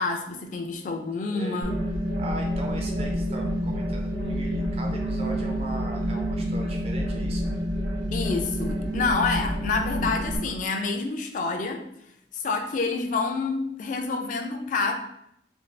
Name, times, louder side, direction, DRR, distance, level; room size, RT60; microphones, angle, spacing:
voice 1, 0.0-1.8 8.1-11.8 12.3-14.9, left 4 dB, 40° left, 3 dB, 0.3 m, -28 dB
voice 2, 1.3-1.6 2.2-7.5, right 1 dB, 30° right, 1 dB, 0.4 m, -39 dB
sound 1, 1.6-10.4, equal, 80° right, 0.8 m, -28 dB
2.6 x 2.3 x 3.1 m, 0.77 s
head